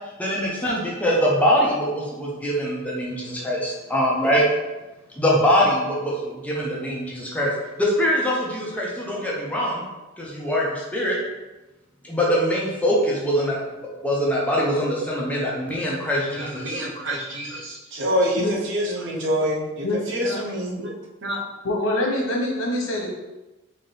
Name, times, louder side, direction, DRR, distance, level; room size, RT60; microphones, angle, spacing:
voice 1, 0.2-4.4 5.2-7.5 7.8-9.9 10.2-11.2 12.0-13.6 14.0-16.8, equal, 5° left, -5 dB, 0.7 m, -23 dB
voice 2, 16.3-20.9 21.2-21.4, equal, 60° right, -2 dB, 0.8 m, -26 dB
voice 3, 19.8-20.4 21.6-23.1, left 1 dB, 90° left, -1 dB, 1.0 m, -25 dB
4.0 x 2.8 x 3.2 m, 1.1 s
head